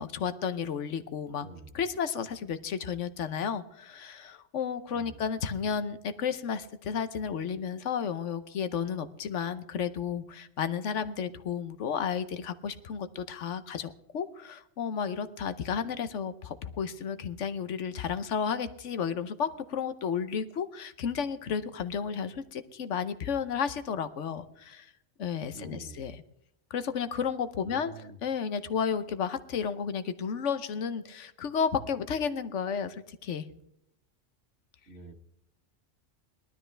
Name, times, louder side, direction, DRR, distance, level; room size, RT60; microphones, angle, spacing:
voice 1, 0.0-1.5 1.7-24.9 25.2-26.2 26.7-33.5, left 7 dB, 70° left, 12 dB, 1.1 m, -32 dB
voice 2, 1.4-1.7 4.9-5.2 25.5-26.1 27.6-28.2 34.9-35.1, right 3 dB, 60° right, 6 dB, 1.6 m, -47 dB
19.0 x 12.5 x 3.3 m, 0.78 s
omnidirectional pair, 1.3 m